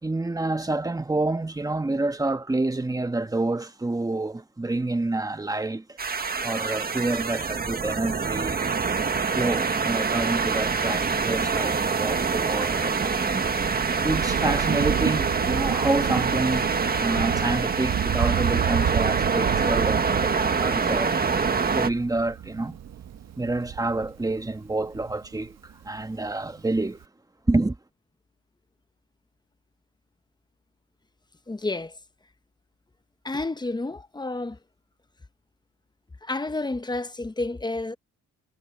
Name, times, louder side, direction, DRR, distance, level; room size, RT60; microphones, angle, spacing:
voice 1, 0.0-6.0 6.4-8.6 9.3-13.5 14.0-16.7 17.0-21.2 21.7-22.8 23.4-27.0 27.5-27.8, right 2 dB, 10° right, 1.4 m, -28 dB
sound 1, 6.0-21.9, right 5 dB, 30° right, 1.6 m, -25 dB
Thunder, 13.0-25.9 26.8-26.9, right 9 dB, 60° right, 1.6 m, -31 dB
voice 2, 31.5-32.0 33.2-34.6 36.2-38.0, left 2 dB, 15° left, 1.0 m, -30 dB
cardioid pair, 90°, 30 cm